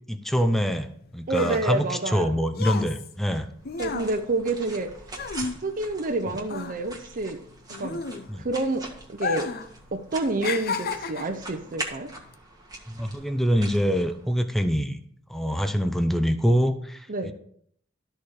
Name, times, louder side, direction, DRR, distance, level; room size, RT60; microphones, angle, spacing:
voice 1, 0.1-3.5 6.3-6.4 8.3-8.4 12.9-15.0 15.3-17.3, equal, ahead, 8 dB, 0.6 m, -25 dB
sound 1, 0.8-6.2 6.4-8.6 9.1-9.7 10.0-11.4 12.1-12.3, left 5 dB, 50° left, 0.6 m, -33 dB
voice 2, 1.3-2.3 3.8-4.9 5.6-7.4 7.8-8.0 8.3-9.5 9.9-12.1 17.1-17.3, right 2 dB, 45° right, 6 dB, 0.7 m, -28 dB
sound 2, 3.3-14.6, right 2 dB, 20° right, 1.7 m, -42 dB
13.0 x 4.4 x 4.8 m, 0.66 s
head